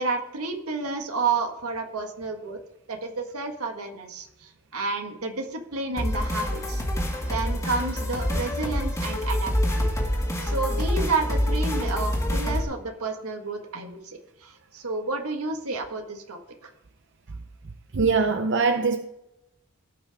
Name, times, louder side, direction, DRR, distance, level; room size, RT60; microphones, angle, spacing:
voice 1, 0.0-2.6 2.9-6.8 7.3-9.9 10.4-16.4, right 3 dB, 85° right, 1.8 m, -30 dB
sound 1, 6.0-12.6, equal, 15° left, 2.0 m, -26 dB
voice 2, 17.9-19.0, right 4 dB, 55° right, 0.6 m, -22 dB
17.0 x 5.8 x 3.6 m
head